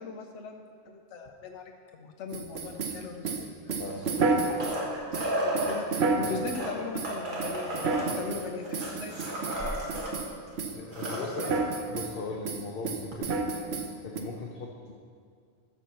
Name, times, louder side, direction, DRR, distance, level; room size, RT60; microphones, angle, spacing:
voice 1, 0.0-3.8 4.1-10.4 10.8-11.5, left 5 dB, 85° left, 3 dB, 1.0 m, -41 dB
sound 1, 2.3-4.8 5.1-6.6 7.0-7.1 7.4-8.5 8.7-10.3 10.6-10.8 11.0-12.1 12.5-14.2, right 4 dB, 70° right, 1.1 m, -30 dB
sound 2, 3.9-5.8 6.4-10.1 10.5-10.6 10.8-11.6 13.1-13.2, right 1 dB, 45° right, 1.7 m, -33 dB
voice 2, 10.7-11.5 11.9-13.4 14.0-14.9, left 3 dB, 55° left, 0 dB, 1.0 m, -38 dB
13.0 x 4.6 x 6.9 m, 2.1 s
omnidirectional pair, 1.2 m